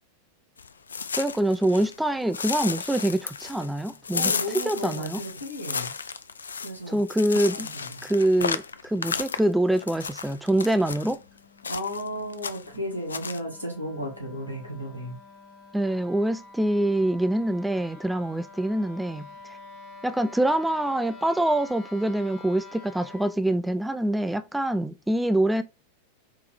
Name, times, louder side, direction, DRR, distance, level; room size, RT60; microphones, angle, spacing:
sound 1, 0.6-2.0 2.3-11.2 11.6-12.1 12.3-12.8 13.1-13.4, left 5 dB, 70° left, 0.3 m, -33 dB
voice 1, 1.2-4.3 4.7-5.2 6.9-7.7 8.0-11.2 15.7-19.3 20.0-25.6, right 1 dB, 5° right, 0.3 m, -25 dB
voice 2, 4.1-5.9 6.6-7.0 7.5-8.1 11.7-15.2, equal, 90° right, 1.9 m, -34 dB
Wind instrument woodwind instrument, 10.5-23.4, left 3 dB, 15° left, 1.7 m, -48 dB
4.6 x 3.3 x 3.4 m
figure-of-eight pair, 90°, 0 cm